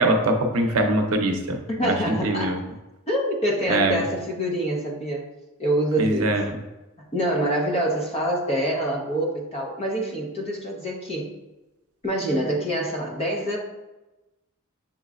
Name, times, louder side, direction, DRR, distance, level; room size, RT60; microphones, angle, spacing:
voice 1, 0.0-2.0 2.2-2.6 3.7-4.0 6.0-6.6, right 2 dB, 75° right, 4 dB, 0.6 m, -22 dB
voice 2, 1.8-2.6 3.1-5.2 5.6-6.4 7.1-11.3 12.0-13.6, right 1 dB, 30° left, -1 dB, 0.8 m, -26 dB
7.1 x 3.1 x 2.4 m, 1.1 s
head